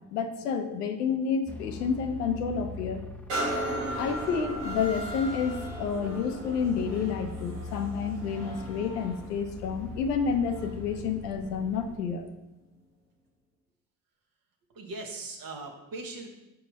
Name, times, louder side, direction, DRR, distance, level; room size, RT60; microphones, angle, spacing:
voice 1, 0.1-3.0 4.0-12.3, left 6 dB, 85° left, 7 dB, 0.6 m, -30 dB
sound 1, 1.5-12.0, left 2 dB, 5° left, 0.4 m, -42 dB
sound 2, 3.3-10.9 11.5-11.6, right 1 dB, 80° right, 1.3 m, -37 dB
voice 2, 14.7-16.3, right 3 dB, 45° right, 2 dB, 1.0 m, -39 dB
5.6 x 4.7 x 4.0 m, 0.96 s
figure-of-eight pair, 45°, 47 cm